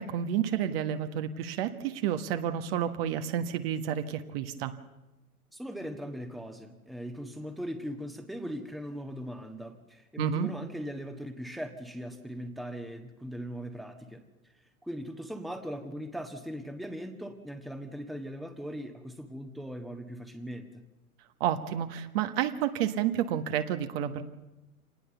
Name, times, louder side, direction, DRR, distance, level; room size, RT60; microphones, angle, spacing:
voice 1, 0.0-4.8 10.2-10.5 21.4-24.2, right 10 dB, 45° right, 8 dB, 1.5 m, -30 dB
voice 2, 5.5-14.2 14.8-20.8, equal, ahead, 6 dB, 1.4 m, -39 dB
26.5 x 19.0 x 7.0 m, 1.0 s
figure-of-eight pair, 105°, 43 cm